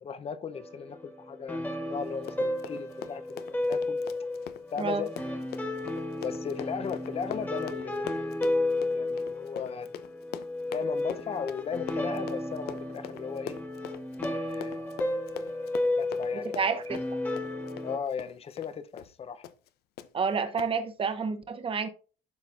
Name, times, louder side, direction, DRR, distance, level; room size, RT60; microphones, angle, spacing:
voice 1, 0.0-4.0 4.7-5.1 6.2-8.4 8.9-9.9 10.7-13.6 14.3-15.0 16.0-16.6 17.8-19.5, left 6 dB, 35° left, 0.7 m, -37 dB
sound 1, 0.5-18.0, left 2 dB, 10° left, 1.2 m, -33 dB
Run, 2.1-18.7 19.0-19.1 19.4-19.7 20.0-20.1 20.6-20.7, left 10 dB, 70° left, 0.6 m, -42 dB
voice 2, 16.5-17.0 20.1-21.9, right 5 dB, 30° right, 0.9 m, -29 dB
12.0 x 4.0 x 2.5 m
cardioid pair, 110°, 17 cm